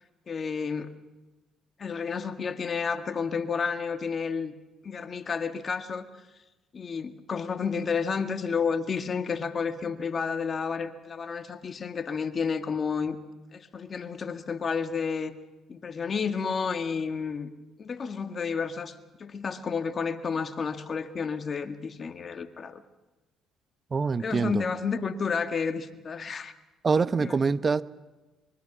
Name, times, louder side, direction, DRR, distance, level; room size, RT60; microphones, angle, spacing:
voice 1, 0.3-0.9 1.8-4.5 4.8-6.1 6.7-13.2 13.5-15.3 15.7-17.5 17.8-18.9 19.2-22.8 24.2-26.5 27.2-27.4, left 5 dB, 45° left, 8 dB, 1.8 m, -31 dB
voice 2, 23.9-24.5 26.8-27.8, right 4 dB, 35° right, 15 dB, 0.9 m, -24 dB
24.0 x 23.0 x 6.1 m, 1.1 s
supercardioid pair, 60°, 0 cm